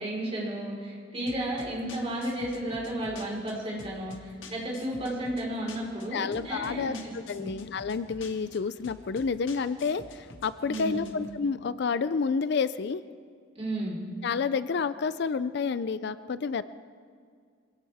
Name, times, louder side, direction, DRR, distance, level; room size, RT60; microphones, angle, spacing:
voice 1, 0.0-7.5 10.7-11.1 13.6-14.0, right 1 dB, 30° right, -4 dB, 4.5 m, -33 dB
sound 1, 1.3-11.4, left 3 dB, 70° left, 1.5 m, -49 dB
voice 2, 6.1-13.0 14.2-16.6, left 5 dB, 55° left, 14 dB, 0.4 m, -29 dB
23.5 x 17.5 x 3.5 m, 2.1 s
head